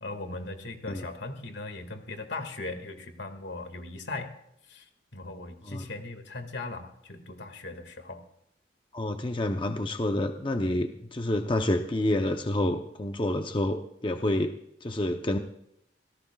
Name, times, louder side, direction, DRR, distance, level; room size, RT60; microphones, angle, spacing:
voice 1, 0.0-4.3 4.7-8.2, left 2 dB, 75° left, 6 dB, 2.0 m, -39 dB
voice 2, 8.9-14.5 14.8-15.4, left 1 dB, 25° left, 6 dB, 0.7 m, -28 dB
26.0 x 17.5 x 2.4 m, 0.76 s
head